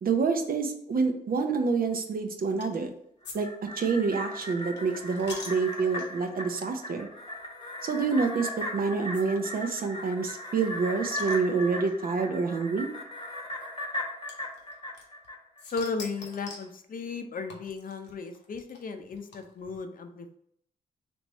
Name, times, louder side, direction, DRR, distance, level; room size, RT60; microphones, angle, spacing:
voice 1, 0.0-2.9 3.3-3.5 3.8-7.1 7.8-12.9, right 4 dB, 55° right, 5 dB, 0.7 m, -27 dB
sound 1, 2.6-2.9 3.2-6.3 6.9-7.1 7.4-7.5 8.5-8.6 9.1-9.2 9.5-9.6 9.8-9.9 10.3-11.9 12.8-12.9 14.3-15.3 15.6-16.7 17.5-19.8, left 3 dB, 85° left, 0.9 m, -45 dB
sound 2, 3.2-15.8 16.2-16.3, left 1 dB, 30° left, 0.9 m, -38 dB
voice 2, 15.7-20.4, left 4 dB, 50° left, 7 dB, 0.6 m, -35 dB
3.4 x 3.1 x 4.0 m, 0.70 s
cardioid pair, 65°, 18 cm